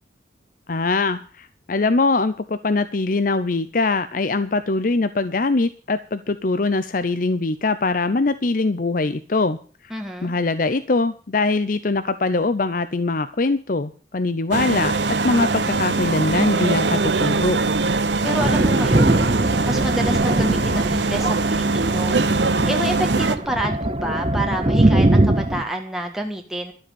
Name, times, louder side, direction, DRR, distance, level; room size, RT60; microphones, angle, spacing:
voice 1, 0.7-9.6 9.8-9.9 10.2-17.6, left 3 dB, 50° left, 12 dB, 0.6 m, -22 dB
voice 2, 9.9-10.3 18.2-19.2 19.6-22.2 22.7-26.7, right 1 dB, ahead, 1 dB, 1.5 m, -28 dB
sound 1, 14.5-23.4, right 3 dB, 70° right, 1.0 m, -22 dB
Thunder, 18.4-25.6, right 1 dB, 30° right, 0.8 m, -21 dB
12.5 x 7.9 x 8.6 m, 0.41 s
head